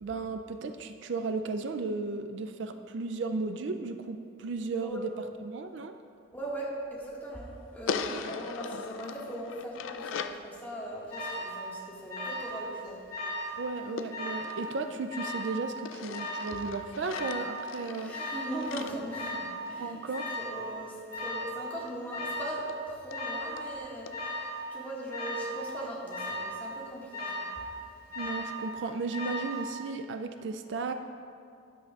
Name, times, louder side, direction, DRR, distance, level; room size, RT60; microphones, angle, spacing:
voice 1, 0.0-5.1 5.4-6.0 8.1-8.2 8.7-8.8 13.6-18.2 19.8-20.3 28.2-30.9, right 3 dB, 65° right, 8 dB, 0.4 m, -35 dB
voice 2, 6.3-13.0 18.0-20.0 20.4-27.4, right 1 dB, 10° left, -6 dB, 1.8 m, -39 dB
sound 1, 7.9-10.5 14.0-15.4 15.8-20.0 21.9-22.0 22.3-22.4 22.7-22.8 23.1-23.2 23.6-23.7 24.1-24.2, left 5 dB, 80° left, 0.4 m, -39 dB
Alarm, 11.1-11.5 12.1-12.6 12.9-13.5 14.1-14.5 15.1-15.6 16.1-16.6 17.1-17.6 18.1-18.5 19.1-19.5 20.1-20.5 21.1-21.6 22.1-22.6 23.1-23.5 24.1-24.5 25.1-25.6 26.1-26.5 27.1-27.6 28.1-28.6 29.1-29.6, left 1 dB, 50° left, 2.0 m, -36 dB
13.0 x 10.5 x 2.4 m, 2.4 s
head